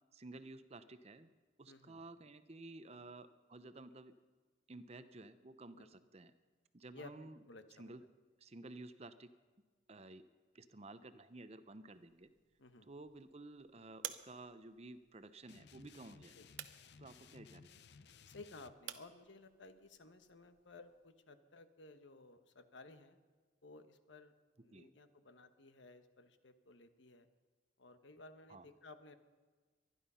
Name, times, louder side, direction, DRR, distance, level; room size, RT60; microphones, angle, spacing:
voice 1, 0.1-1.3 1.6-4.1 4.7-6.3 6.7-7.4 7.8-8.0 8.4-9.3 9.9-10.2 10.5-12.3 12.9-16.4 17.0-17.9 24.6-24.9 28.5-28.7, right 2 dB, 35° right, 12 dB, 0.7 m, -53 dB
voice 2, 1.7-2.0 5.7-5.9 6.9-7.9 12.6-12.9 16.4-16.5 18.3-23.2 23.6-24.3 24.6-27.3 27.8-29.2, left 3 dB, 75° left, 9 dB, 1.1 m, -57 dB
sound 1, 11.9-21.1, right 11 dB, 85° right, 0.9 m, -55 dB
sound 2, 15.5-18.7, left 5 dB, 60° left, 0.6 m, -60 dB
23.5 x 11.0 x 5.6 m, 1.4 s
head